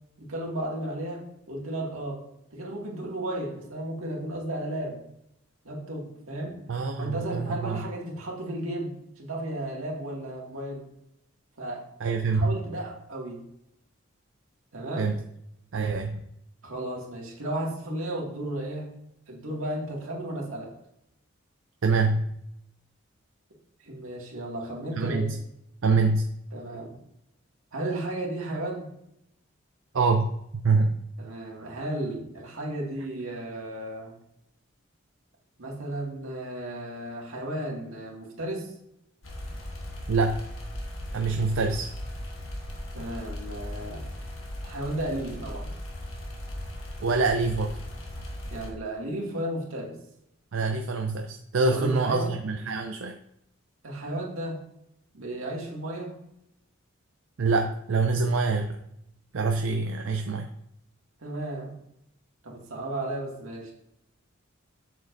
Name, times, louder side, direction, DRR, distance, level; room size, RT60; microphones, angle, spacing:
voice 1, 0.2-1.2 1.5-2.2 2.5-5.0 5.6-6.6 7.0-10.8 11.6-11.8 12.3-13.4 14.7-15.1 16.6-18.9 19.3-20.7 23.8-25.3 26.5-27.0 27.7-28.9 31.2-34.1 35.6-38.7 42.9-44.1 44.6-45.7 48.5-49.9 51.7-52.3 53.8-54.6 55.1-56.1 61.2-61.7 62.4-63.7, right 1 dB, 90° right, -2 dB, 2.1 m, -34 dB
voice 2, 6.7-7.8 12.0-12.6 15.0-15.2 15.7-16.2 21.8-22.3 25.0-25.4 25.8-26.3 29.9-30.3 30.6-30.9 40.1-40.4 41.1-41.9 47.0-47.7 50.5-53.2 57.4-58.8 59.3-60.5, right 4 dB, 70° right, 4 dB, 0.5 m, -25 dB
sound 1, 39.2-48.7, left 1 dB, 85° left, 1.4 m, -38 dB
7.5 x 7.2 x 2.6 m, 0.79 s
head